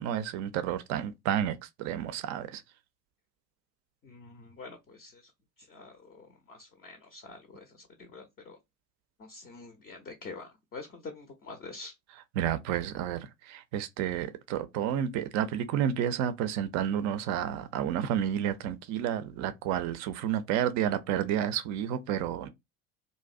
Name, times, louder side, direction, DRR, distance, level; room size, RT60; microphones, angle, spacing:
voice 1, 0.0-2.6 12.4-22.5, right 10 dB, 45° right, 0.5 m, -30 dB
voice 2, 4.0-5.3 5.6-8.6 9.2-11.9, left 3 dB, 25° left, 0.5 m, -46 dB
2.5 x 2.0 x 2.3 m
figure-of-eight pair, 65°, 42 cm